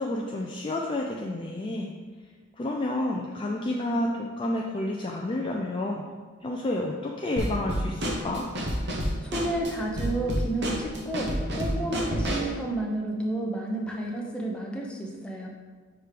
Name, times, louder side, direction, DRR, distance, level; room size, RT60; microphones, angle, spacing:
voice 1, 0.0-1.9 2.6-6.0 6.4-8.5, left 1 dB, 25° left, -1 dB, 0.3 m, -30 dB
Drum kit / Snare drum, 7.4-12.6, equal, 55° right, 0.8 m, -30 dB
voice 2, 9.2-15.5, right 1 dB, 5° left, -2 dB, 0.7 m, -31 dB
6.0 x 3.3 x 4.9 m, 1.5 s
head